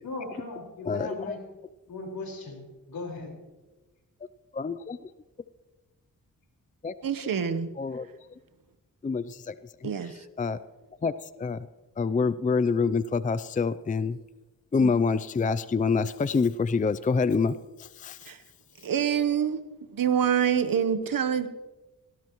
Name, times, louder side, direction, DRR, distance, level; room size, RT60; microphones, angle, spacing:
voice 1, 0.0-1.4 1.9-3.3, left 2 dB, 75° left, 4.9 m, -38 dB
voice 2, 0.9-1.4 4.5-5.0 6.8-6.9 7.8-8.1 9.0-9.6 9.8-9.9 10.4-10.6 11.0-11.1 11.4-11.7 12.0-14.2 14.7-17.5 17.8-18.3, left 4 dB, 25° left, 0.5 m, -26 dB
voice 3, 7.0-7.7 9.8-10.2 14.8-14.9 18.3-18.4 18.8-19.6 19.9-21.5, right 8 dB, 70° right, 1.1 m, -26 dB
18.5 x 17.0 x 3.1 m
cardioid pair, 65°, 35 cm